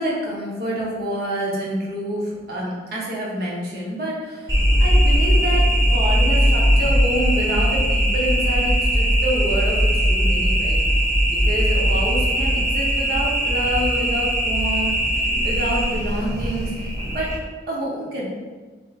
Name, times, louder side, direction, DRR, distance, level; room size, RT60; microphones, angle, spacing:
voice 1, 0.0-11.0 11.3-17.4 17.7-18.2, equal, 55° right, -4 dB, 0.8 m, -27 dB
sound 1, 4.5-17.4, equal, 20° right, 0.4 m, -19 dB
3.4 x 2.7 x 2.4 m, 1.4 s
head